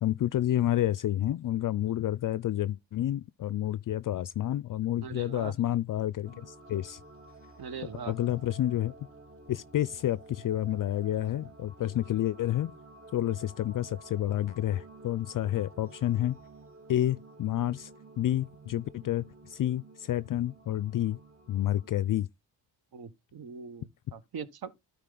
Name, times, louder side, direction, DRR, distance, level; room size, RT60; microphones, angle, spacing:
voice 1, 0.0-7.0 8.1-8.9 9.5-12.7 13.1-16.4 16.9-17.9 18.2-21.2 21.5-22.3, left 12 dB, 50° left, 0.5 m, -29 dB
voice 2, 5.0-5.5 7.6-8.1 22.9-24.7, right 6 dB, 60° right, 1.3 m, -41 dB
sound 1, 6.2-22.0, right 3 dB, 30° right, 1.6 m, -52 dB
12.5 x 5.0 x 3.8 m
cardioid pair, 80°, 43 cm